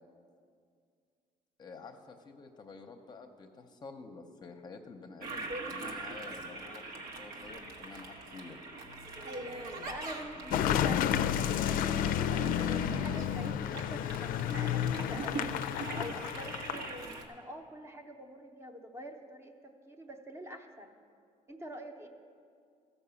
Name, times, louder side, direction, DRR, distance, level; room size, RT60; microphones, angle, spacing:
voice 1, 1.6-8.6, left 4 dB, 30° left, 5 dB, 0.7 m, -49 dB
Toilet flush, 5.2-17.2, right 3 dB, 85° right, 1.2 m, -43 dB
voice 2, 9.8-20.9 21.5-22.1, equal, 20° right, 4 dB, 0.8 m, -45 dB
Car passing by / Engine, 10.5-17.1, left 10 dB, 80° left, 0.4 m, -31 dB
14.0 x 5.5 x 7.0 m, 2.2 s
cardioid pair, 150°, 14 cm